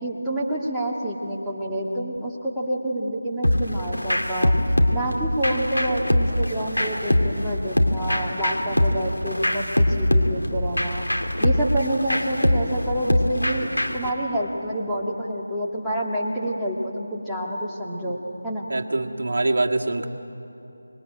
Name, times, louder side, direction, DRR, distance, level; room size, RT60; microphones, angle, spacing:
voice 1, 0.0-4.5 4.9-9.6 10.0-11.0 11.4-13.7 13.9-18.7, right 1 dB, ahead, -9 dB, 2.1 m, -28 dB
sound 1, 3.4-14.1, left 1 dB, 90° left, 2.4 m, -23 dB
voice 2, 18.7-20.1, right 2 dB, 55° right, 2 dB, 1.7 m, -24 dB
25.0 x 21.5 x 8.9 m, 2.9 s
figure-of-eight pair, 165°, 0 cm